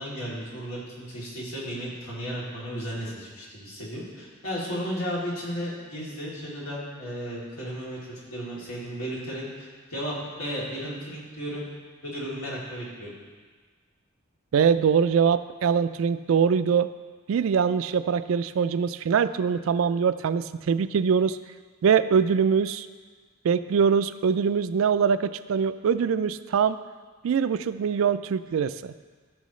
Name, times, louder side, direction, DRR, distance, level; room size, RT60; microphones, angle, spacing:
voice 1, 0.0-11.6 12.0-13.1, equal, 80° left, -6 dB, 2.9 m, -34 dB
voice 2, 14.5-16.9 17.3-21.4 21.8-22.9 23.4-26.8 27.2-28.9, right 6 dB, 70° right, 13 dB, 0.3 m, -23 dB
15.0 x 6.2 x 3.2 m, 1.5 s
head